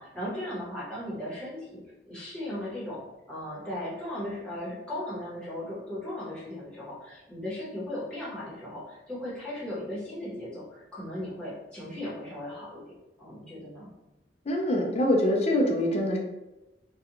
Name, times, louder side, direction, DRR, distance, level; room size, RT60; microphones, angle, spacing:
voice 1, 0.0-3.0 3.3-12.8 13.2-13.9, left 1 dB, 5° left, -9 dB, 0.9 m, -37 dB
voice 2, 14.5-16.2, left 1 dB, 35° left, 1 dB, 0.4 m, -24 dB
2.4 x 2.2 x 2.8 m, 1.0 s
head